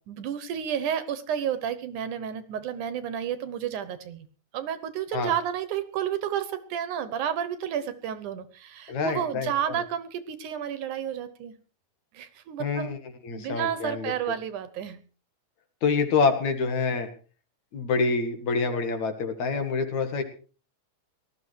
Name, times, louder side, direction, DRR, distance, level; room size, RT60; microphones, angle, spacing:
voice 1, 0.1-4.3 4.5-11.5 12.1-12.9 13.3-15.0, right 9 dB, 70° right, 13 dB, 2.4 m, -31 dB
voice 2, 8.9-9.8 12.6-13.0 13.2-14.1 15.8-17.1 17.7-20.2, left 4 dB, 60° left, 6 dB, 3.0 m, -26 dB
18.5 x 13.0 x 4.6 m, 0.37 s
omnidirectional pair, 4.0 m